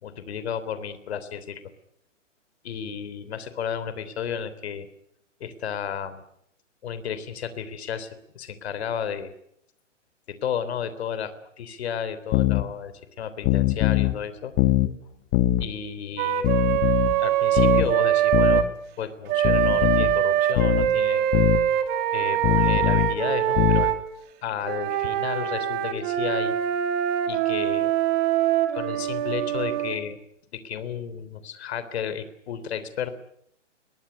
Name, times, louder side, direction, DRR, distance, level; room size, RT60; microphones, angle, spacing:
voice 1, 0.0-1.7 2.6-4.9 5.4-6.2 6.8-9.3 10.3-14.5 15.6-16.7 17.2-18.7 19.0-21.3 22.1-23.9 24.4-26.5 27.3-27.9 28.7-30.2 30.5-33.2, left 8 dB, 55° left, 13 dB, 3.5 m, -32 dB
sound 1, 12.3-12.6 13.4-14.2 14.6-14.9 15.3-15.7 16.4-17.2 17.6-17.9 18.3-18.7 19.4-20.1 20.6-20.9 21.3-21.6 22.4-23.1 23.6-23.9, left 16 dB, 25° left, 1.4 m, -21 dB
Wind instrument woodwind instrument, 16.2-18.7 19.3-24.0 24.6-30.0, right 11 dB, 25° right, 2.7 m, -23 dB
23.0 x 22.5 x 9.8 m, 0.75 s
hypercardioid pair, 135°, 37 cm